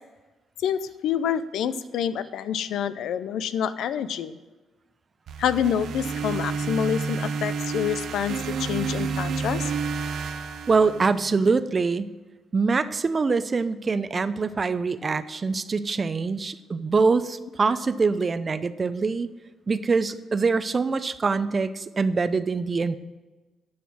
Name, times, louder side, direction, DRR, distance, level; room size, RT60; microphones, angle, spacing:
voice 1, 0.6-4.4 5.4-9.7, left 8 dB, 80° left, 14 dB, 0.5 m, -27 dB
sound 1, 5.3-11.4, right 5 dB, 70° right, 0.8 m, -30 dB
voice 2, 10.7-12.1 12.5-19.3 19.7-23.0, right 4 dB, 35° right, 14 dB, 0.6 m, -24 dB
10.0 x 6.4 x 6.2 m, 1.2 s
cardioid pair, 90°, 0 cm